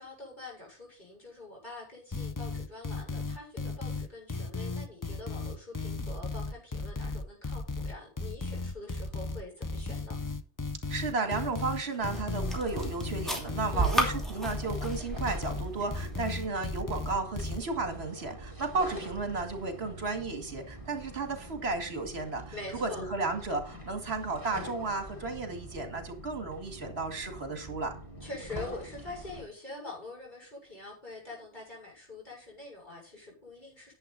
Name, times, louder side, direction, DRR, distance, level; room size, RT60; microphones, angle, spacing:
voice 1, 0.0-10.2 13.7-14.0 22.5-23.0 28.2-33.9, left 2 dB, 40° left, 6.9 m, -45 dB
sound 1, 2.1-17.6, left 3 dB, 25° left, 0.5 m, -35 dB
voice 2, 10.9-27.9, right 3 dB, 65° right, 2.4 m, -33 dB
sound 2, 11.2-16.4, right 1 dB, ahead, 2.7 m, -35 dB
sound 3, 12.0-29.4, right 1 dB, 15° right, 5.0 m, -44 dB
10.5 x 9.3 x 4.1 m
omnidirectional pair, 1.2 m